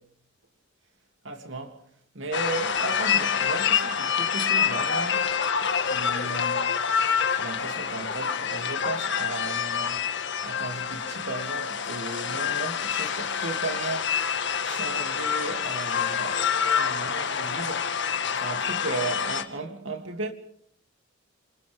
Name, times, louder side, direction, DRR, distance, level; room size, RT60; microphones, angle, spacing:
voice 1, 1.2-1.8 2.1-5.3 5.7-6.7 7.4-10.1 10.4-14.3 14.6-16.4 16.8-17.9 18.4-20.3, right 3 dB, 65° right, 3.0 m, -35 dB
sound 1, 2.3-19.4, left 7 dB, 60° left, 1.8 m, -27 dB
28.5 x 27.5 x 3.7 m
head